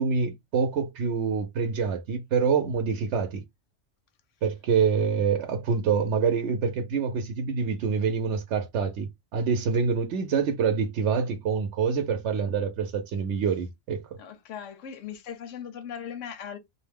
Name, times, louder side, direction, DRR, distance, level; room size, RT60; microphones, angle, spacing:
voice 1, 0.0-3.4 4.4-14.0, right 6 dB, 75° right, 0.9 m, -26 dB
voice 2, 14.2-16.6, left 8 dB, 90° left, 1.0 m, -39 dB
2.6 x 2.0 x 3.3 m
omnidirectional pair, 1.2 m